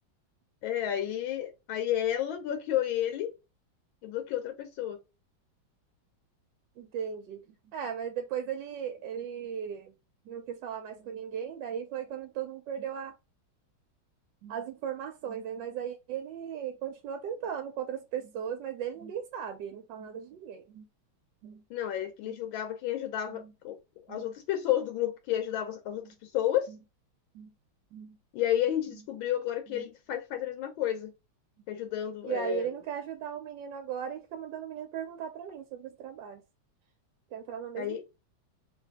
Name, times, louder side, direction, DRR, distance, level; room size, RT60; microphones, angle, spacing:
voice 1, 0.6-3.3 4.0-5.0 21.7-23.8 24.1-26.7 28.3-31.1 31.7-32.7 37.8-38.0, left 11 dB, 80° left, 1.4 m, -31 dB
voice 2, 6.8-9.9 10.3-13.2 14.4-20.9 21.4-21.6 22.2-22.4 23.3-23.5 24.1-24.3 26.7-26.8 27.3-27.5 27.9-28.2 28.9-29.0 29.7-29.9 32.2-36.4 37.3-38.0, right 8 dB, 70° right, 1.2 m, -37 dB
3.3 x 2.6 x 3.5 m
omnidirectional pair, 2.2 m